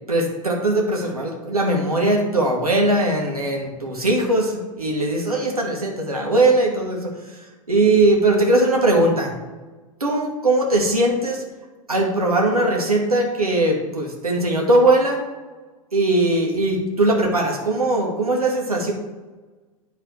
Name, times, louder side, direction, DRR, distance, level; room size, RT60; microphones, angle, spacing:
voice 1, 0.1-7.4 7.7-9.3 10.0-11.4 11.9-15.2 15.9-18.9, right 2 dB, 85° right, -1 dB, 2.1 m, -20 dB
10.0 x 4.1 x 4.7 m, 1.3 s
figure-of-eight pair, 95°, 18 cm